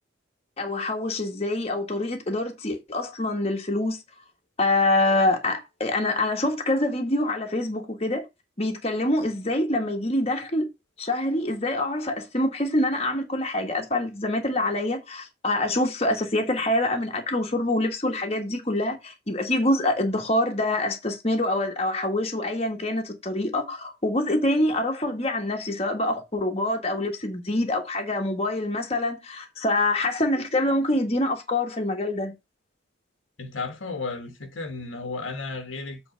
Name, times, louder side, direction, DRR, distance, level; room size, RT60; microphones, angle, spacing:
voice 1, 0.6-4.0 4.6-8.3 8.6-10.7 11.0-32.3, left 1 dB, 30° left, 1.5 m, -25 dB
voice 2, 33.4-36.1, left 3 dB, 80° left, 1.3 m, -34 dB
8.0 x 3.9 x 5.1 m
head